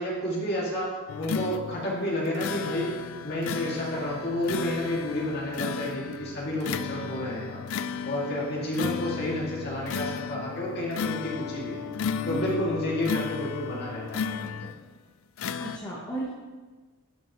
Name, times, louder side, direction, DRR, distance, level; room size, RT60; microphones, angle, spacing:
voice 1, 0.0-2.9 3.2-7.6 8.0-11.8 12.3-14.7, left 1 dB, 50° left, -4 dB, 2.3 m, -30 dB
sound 1, 1.1-14.9 15.4-15.8, left 6 dB, 70° left, 0.4 m, -34 dB
voice 2, 15.6-16.3, right 1 dB, 20° left, -5 dB, 1.1 m, -34 dB
12.0 x 6.3 x 3.1 m, 1.4 s
head